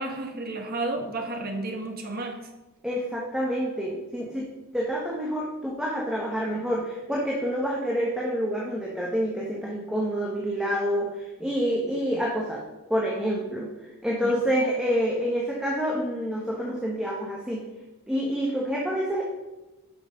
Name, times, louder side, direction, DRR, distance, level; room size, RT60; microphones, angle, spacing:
voice 1, 0.0-2.5 14.2-14.3, right 2 dB, 45° right, 4 dB, 1.4 m, -32 dB
voice 2, 2.8-4.4 4.7-12.6 12.9-13.7 14.0-17.6 18.1-19.2, equal, 5° right, -4 dB, 1.4 m, -27 dB
11.5 x 6.1 x 5.2 m, 1.0 s
head